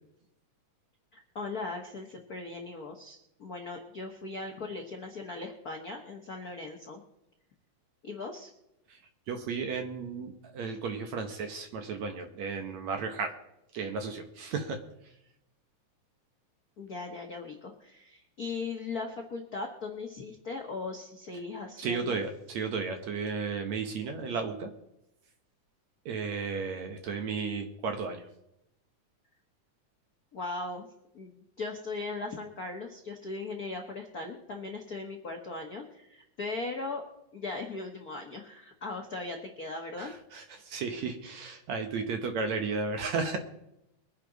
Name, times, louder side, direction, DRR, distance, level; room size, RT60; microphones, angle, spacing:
voice 1, 1.1-7.0 8.0-8.5 16.8-22.2 30.3-30.9 31.1-37.0 37.3-40.1, left 3 dB, 75° left, 2 dB, 0.8 m, -38 dB
voice 2, 9.3-13.4 13.7-14.8 21.8-24.7 26.1-28.2 40.0-43.4, right 5 dB, 65° right, 5 dB, 2.1 m, -34 dB
23.0 x 10.0 x 4.0 m, 0.84 s
omnidirectional pair, 3.7 m